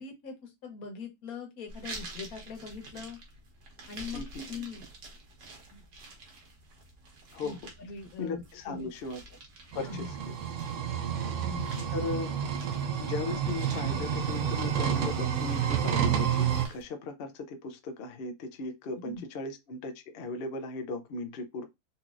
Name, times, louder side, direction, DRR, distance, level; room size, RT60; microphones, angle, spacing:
voice 1, 0.0-3.2 3.9-4.2 4.5-4.8 5.7-5.8 7.4-8.9 9.8-10.1 11.3-11.9 19.0-19.2, left 5 dB, 60° left, 1.4 m, -42 dB
sound 1, 1.7-16.9, right 2 dB, 90° right, 1.7 m, -49 dB
voice 2, 4.1-4.5 7.3-7.6 8.2-9.2 9.7-10.4 11.9-12.3 13.0-21.7, left 3 dB, 80° left, 0.5 m, -37 dB
sound 2, 9.7-16.7, right 8 dB, 65° right, 0.7 m, -30 dB
4.1 x 2.9 x 2.4 m
omnidirectional pair, 1.8 m